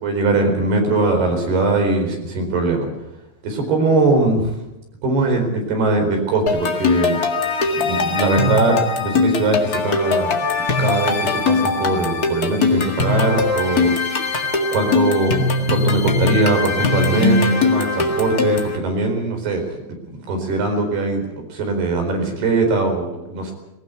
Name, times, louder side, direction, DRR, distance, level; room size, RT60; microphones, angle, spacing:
voice 1, 0.0-2.9 3.4-4.6 5.0-7.2 7.8-10.4 10.8-13.9 14.7-15.4 15.7-19.6 20.3-21.2 21.5-23.5, right 3 dB, 70° right, 4 dB, 6.4 m, -20 dB
sound 1, 6.5-18.8, left 3 dB, 40° left, 1.4 m, -20 dB
19.5 x 19.0 x 8.2 m, 0.94 s
omnidirectional pair, 4.7 m